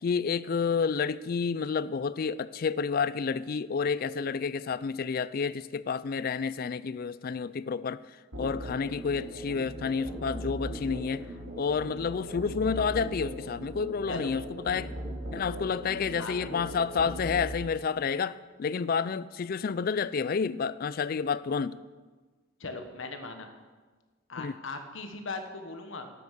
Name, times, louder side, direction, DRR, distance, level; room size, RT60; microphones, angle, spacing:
voice 1, 0.0-8.0 8.3-11.2 11.6-14.9 15.3-21.8 24.4-24.5, left 5 dB, 45° left, 0.3 m, -30 dB
Musical instrument, 8.3-17.5, equal, 85° right, 3.1 m, -39 dB
voice 2, 16.2-16.7 22.6-23.5 24.3-26.1, left 3 dB, 70° left, 1.3 m, -39 dB
12.5 x 8.4 x 6.6 m
head